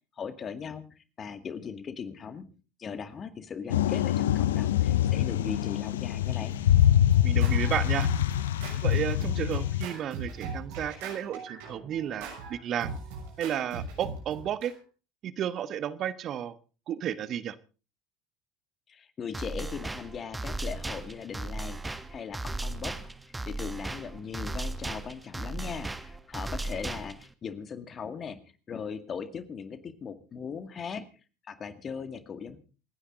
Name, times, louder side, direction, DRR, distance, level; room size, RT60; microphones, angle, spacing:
voice 1, 0.2-2.4 2.8-6.6 18.9-23.1 23.5-28.4 28.7-31.1 31.5-32.6, left 6 dB, 35° left, 11 dB, 2.0 m, -39 dB
sound 1, 3.7-9.9, left 11 dB, 80° left, 0.7 m, -25 dB
Scratching (performance technique), 6.2-14.7, right 3 dB, 70° right, 6.4 m, -40 dB
voice 2, 7.2-8.1 8.8-12.9 13.4-14.7 15.2-16.6 16.9-17.6, right 10 dB, 50° right, 15 dB, 1.3 m, -32 dB
sound 2, 19.3-27.3, right 2 dB, 10° right, 1.6 m, -36 dB
28.0 x 10.0 x 3.8 m, 0.35 s
hypercardioid pair, 70°, 0 cm